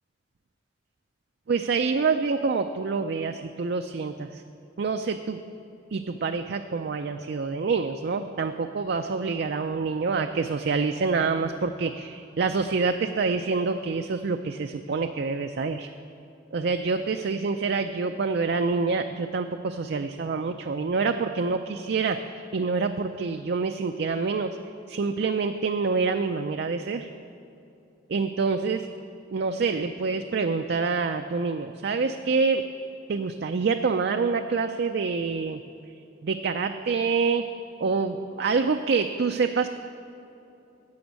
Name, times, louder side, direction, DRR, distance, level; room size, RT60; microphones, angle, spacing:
voice 1, 1.5-4.4 4.8-5.4 5.9-15.9 16.5-24.6 24.9-27.1 28.1-28.9 29.3-32.6 33.1-35.6 36.2-37.5 37.8-39.7, right 4 dB, 60° right, 6 dB, 0.4 m, -26 dB
11.5 x 7.0 x 8.3 m, 2.8 s
head